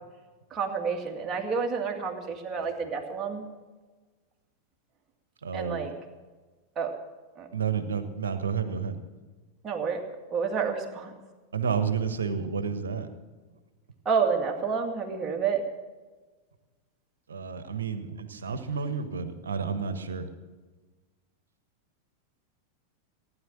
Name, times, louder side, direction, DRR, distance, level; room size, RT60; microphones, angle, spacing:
voice 1, 0.5-3.4 5.5-5.9 6.8-6.9 7.4-7.5 9.6-10.0 10.3-11.1 14.1-15.6, right 5 dB, 25° right, 2 dB, 2.2 m, -29 dB
voice 2, 5.4-5.9 7.5-9.0 11.5-13.1 17.3-20.3, right 6 dB, 70° right, 10 dB, 1.3 m, -30 dB
16.5 x 9.9 x 7.3 m, 1.3 s
figure-of-eight pair, 90°, 0 cm